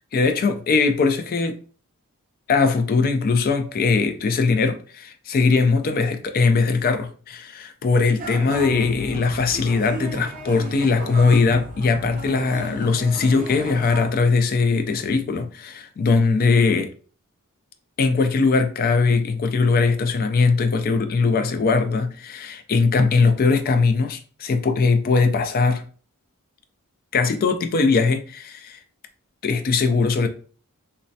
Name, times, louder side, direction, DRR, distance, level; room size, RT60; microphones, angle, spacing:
voice 1, 0.1-1.6 2.5-16.9 18.0-25.8 27.1-28.8 29.4-30.3, left 4 dB, 40° left, 0.3 m, -20 dB
sound 1, 8.2-14.1, right 1 dB, 40° right, 0.6 m, -33 dB
3.1 x 2.1 x 2.7 m
head